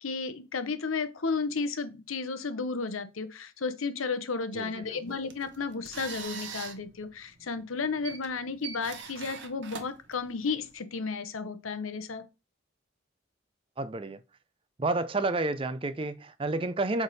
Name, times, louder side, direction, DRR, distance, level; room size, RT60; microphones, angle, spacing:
voice 1, 0.0-12.2, left 4 dB, 90° left, 0.8 m, -33 dB
voice 2, 4.5-5.0 13.8-14.2 14.8-17.0, right 2 dB, 25° right, 0.4 m, -30 dB
sound 1, 5.1-10.7, right 6 dB, 60° right, 1.0 m, -43 dB
8.1 x 3.4 x 4.1 m
head